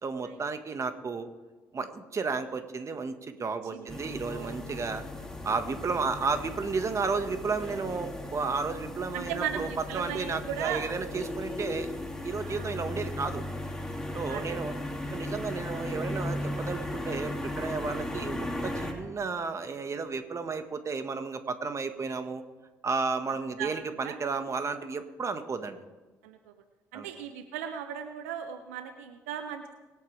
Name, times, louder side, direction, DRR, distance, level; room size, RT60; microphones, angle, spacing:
voice 1, 0.0-1.3 1.7-5.0 5.4-9.7 9.9-11.9 12.2-13.4 14.1-14.7 15.1-22.4 22.8-25.8 26.9-27.1, right 4 dB, 40° right, 8 dB, 1.6 m, -33 dB
sound 1, 3.9-18.9, left 1 dB, 5° left, 2.6 m, -36 dB
voice 2, 4.2-4.6 9.1-10.8 12.4-12.8 14.3-14.7 23.6-23.7 24.0-24.2 26.2-26.5 26.9-29.7, right 9 dB, 90° right, 8 dB, 0.7 m, -37 dB
24.5 x 8.6 x 3.4 m, 1.2 s
hypercardioid pair, 50°, 8 cm